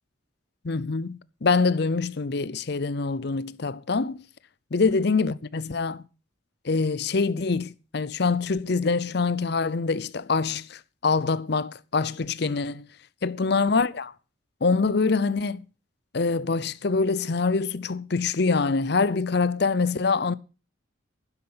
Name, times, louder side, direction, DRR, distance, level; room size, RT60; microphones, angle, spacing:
voice 1, 0.6-4.2 4.7-6.0 6.6-12.9 13.2-14.1 14.6-15.6 16.1-20.3, left 4 dB, 55° left, 0.6 m, -25 dB
12.0 x 10.0 x 5.7 m
head